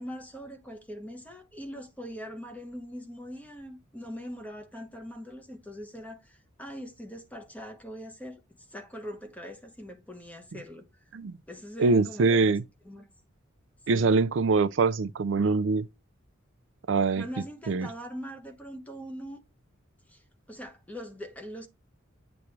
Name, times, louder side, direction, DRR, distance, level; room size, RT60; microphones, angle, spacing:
voice 1, 0.0-8.4 8.7-10.9 11.5-12.6 12.8-13.0 13.9-14.2 17.2-19.4 20.1-20.2 20.5-21.7, equal, 10° left, 1.0 m, -42 dB
voice 2, 11.8-12.6 13.9-15.9 16.9-17.2 17.7-17.9, right 4 dB, 65° right, 0.4 m, -23 dB
8.2 x 3.0 x 4.6 m
head